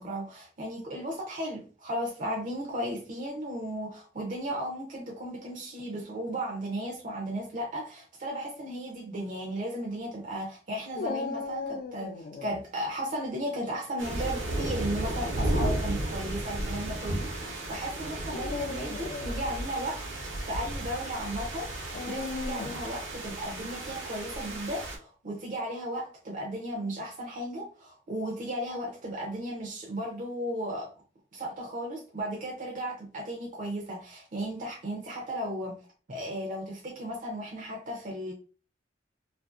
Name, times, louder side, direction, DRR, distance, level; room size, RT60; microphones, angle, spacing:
voice 1, 0.0-20.1 20.4-30.9 31.3-35.8 36.1-38.3, right 1 dB, 45° right, 0.5 m, -35 dB
Dog, 11.0-12.6 14.7-15.2 16.0-16.1 18.2-19.5 21.9-22.9, left 4 dB, 50° left, 0.3 m, -37 dB
sound 1, 14.0-25.0, right 1 dB, 85° right, 0.8 m, -34 dB
2.5 x 2.4 x 2.3 m
head